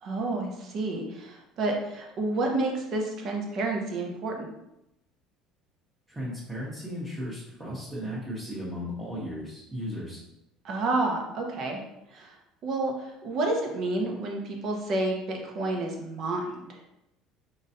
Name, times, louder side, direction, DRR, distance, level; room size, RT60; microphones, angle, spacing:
voice 1, 0.0-4.5 10.6-11.8 12.1-12.3 12.6-12.9 13.2-16.8, right 2 dB, 45° right, 1 dB, 0.9 m, -30 dB
voice 2, 6.1-10.2, equal, 10° right, -8 dB, 1.1 m, -35 dB
5.2 x 3.0 x 2.7 m, 0.86 s
cardioid pair, 140°, 0 cm